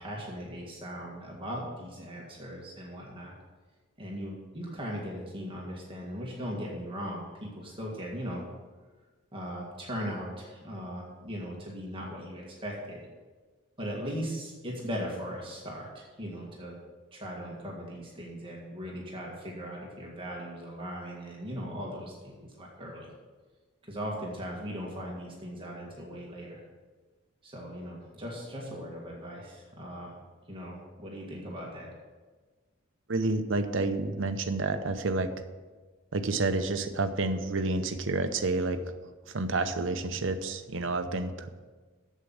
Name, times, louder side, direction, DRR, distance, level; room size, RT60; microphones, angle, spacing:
voice 1, 0.0-3.3 4.0-8.4 9.3-13.1 13.8-16.8 17.1-23.1 23.8-26.6 27.4-30.1 30.5-31.9, equal, 25° right, -3 dB, 1.8 m, -38 dB
voice 2, 33.1-35.3 36.1-38.9 39.3-41.5, right 3 dB, 60° right, 8 dB, 0.7 m, -29 dB
8.2 x 7.5 x 7.2 m, 1.3 s
head